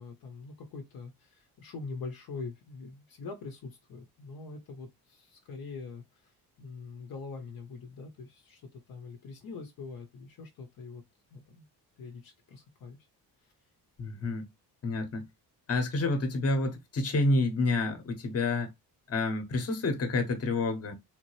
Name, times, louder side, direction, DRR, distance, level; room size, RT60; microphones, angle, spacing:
voice 1, 0.0-11.0 11.3-11.6 12.0-13.0, left 4 dB, 60° left, 0.8 m, -44 dB
voice 2, 14.0-14.4 14.8-15.3 15.7-18.7 19.1-20.9, left 2 dB, 40° left, 1.0 m, -29 dB
3.7 x 2.7 x 3.0 m
cardioid pair, 140°, 40 cm